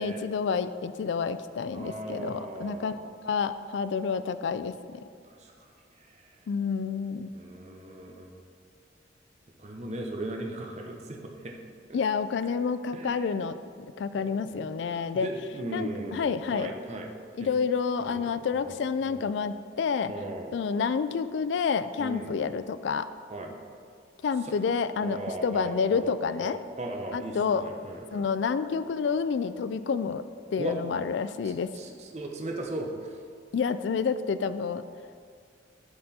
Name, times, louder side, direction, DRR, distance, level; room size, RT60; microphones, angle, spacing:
voice 1, 0.0-5.0 6.5-7.3 11.9-15.3 15.7-16.7 17.4-20.1 20.5-23.1 24.2-26.6 27.1-27.7 28.1-30.2 30.5-31.7 33.5-34.8, left 5 dB, 70° left, 13 dB, 0.3 m, -29 dB
voice 2, 1.7-3.0 5.4-5.7 6.0-6.3 7.3-8.4 9.6-11.5 11.9-12.0 12.9-13.3 14.2-17.1 17.4-17.6 18.0-19.2 20.0-20.6 22.0-22.3 23.3-23.6 24.4-24.5 25.0-26.1 26.4-28.3 30.6-30.8 31.4-33.1, right 1 dB, 35° right, 1 dB, 0.9 m, -38 dB
13.0 x 4.4 x 4.2 m, 2.2 s
head